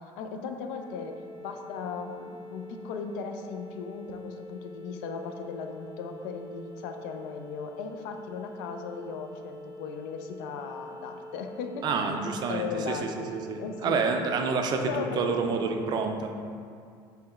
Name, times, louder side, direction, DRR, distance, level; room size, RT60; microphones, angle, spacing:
voice 1, 0.2-1.1 1.4-11.8 12.2-13.1 13.6-14.0 14.9-16.0, left 5 dB, 85° left, 5 dB, 0.4 m, -37 dB
sound 1, 0.8-15.9, left 1 dB, 20° left, 0.9 m, -45 dB
voice 2, 11.8-16.3, right 4 dB, 40° right, 4 dB, 0.3 m, -28 dB
4.6 x 3.1 x 2.4 m, 2.3 s
cardioid pair, 130°, 11 cm